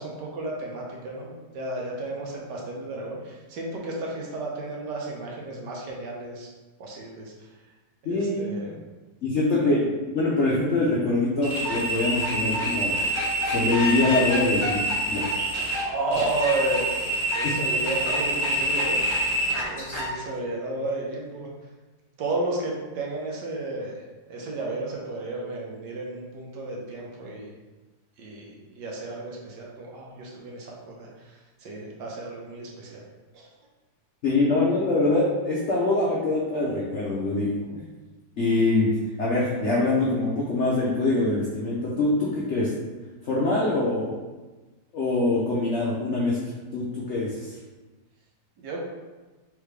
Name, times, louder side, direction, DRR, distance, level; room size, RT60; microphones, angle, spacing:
voice 1, 0.0-6.5 6.8-7.5 8.1-8.8 9.6-9.7 15.8-16.9 17.3-19.0 19.7-21.5 22.2-24.0 24.3-27.5 28.2-33.0 33.3-33.5 48.6-48.8, right 2 dB, 70° right, -2 dB, 1.3 m, -32 dB
voice 2, 8.0-8.4 9.2-12.9 13.4-14.8 15.1-15.3 17.4-17.5 34.2-37.5 38.4-38.9 39.2-42.7 43.3-44.1 44.9-46.4 46.7-47.5, left 2 dB, 70° left, -5 dB, 0.6 m, -24 dB
sound 1, 11.4-20.1, right 1 dB, 25° left, 1.5 m, -26 dB
3.6 x 3.4 x 3.2 m, 1.2 s
omnidirectional pair, 2.1 m